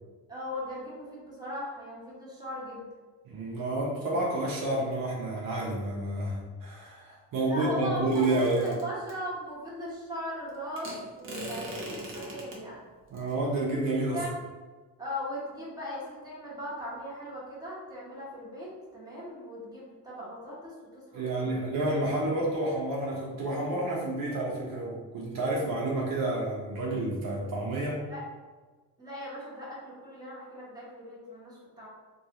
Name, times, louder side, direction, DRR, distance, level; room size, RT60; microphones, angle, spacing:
voice 1, 0.3-2.9 7.4-12.8 14.1-14.3 15.0-21.6 28.1-28.2 29.0-31.9, equal, 10° right, -8 dB, 1.2 m, -38 dB
voice 2, 3.2-8.8 13.1-14.2 21.1-28.0, right 2 dB, 65° right, -3 dB, 0.8 m, -30 dB
sound 1, 8.1-9.1 10.8-12.6 13.2-13.3, right 1 dB, 35° right, 0.7 m, -40 dB
3.5 x 2.4 x 2.9 m, 1.3 s
cardioid pair, 140°, 36 cm